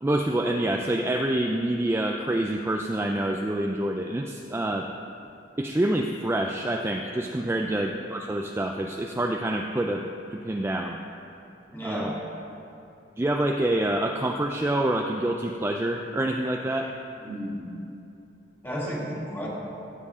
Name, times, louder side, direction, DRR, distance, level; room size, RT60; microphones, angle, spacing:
voice 1, 0.0-4.9 5.6-10.0 10.3-11.0 11.8-12.1 13.2-16.9, right 1 dB, 15° right, 2 dB, 0.3 m, -27 dB
voice 2, 11.7-12.1 17.2-17.6 18.6-19.5, equal, 10° left, -5 dB, 2.1 m, -33 dB
15.0 x 7.6 x 3.7 m, 2.8 s
head